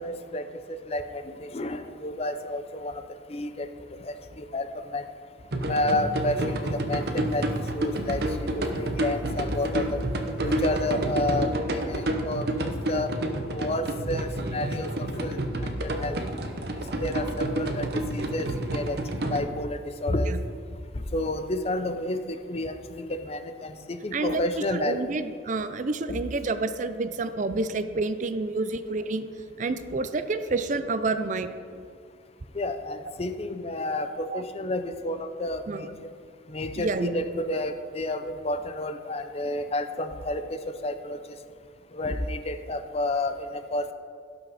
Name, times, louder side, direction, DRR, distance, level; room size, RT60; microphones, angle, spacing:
voice 1, 0.0-3.0 3.3-3.7 4.0-5.1 5.6-7.5 7.7-10.1 10.4-13.1 13.5-16.2 16.7-19.0 19.3-20.3 21.1-22.8 23.1-25.0 26.1-26.2 32.5-36.1 36.5-41.2 41.9-43.9, left 1 dB, 35° left, 9 dB, 0.6 m, -30 dB
sound 1, 5.5-19.4, right 1 dB, 60° right, 0.9 m, -29 dB
voice 2, 20.1-20.4 24.1-29.3 29.6-31.5 34.3-34.4 35.7-35.8 36.8-37.2, right 3 dB, 45° right, 10 dB, 0.5 m, -29 dB
17.0 x 5.8 x 4.1 m, 2.1 s
head